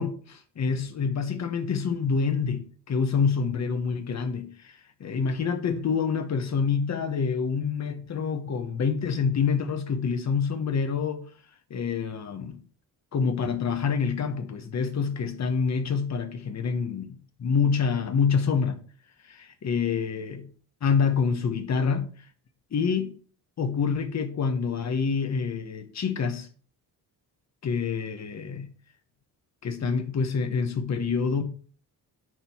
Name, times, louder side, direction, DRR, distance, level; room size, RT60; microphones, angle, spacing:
voice 1, 0.0-11.2 11.7-12.6 13.1-18.8 19.3-20.5 20.8-22.1 22.7-23.1 23.6-26.5 27.6-28.7 29.6-31.4, left 5 dB, 45° left, 1.3 m, -27 dB
9.0 x 6.2 x 4.5 m
wide cardioid pair, 175°, 39 cm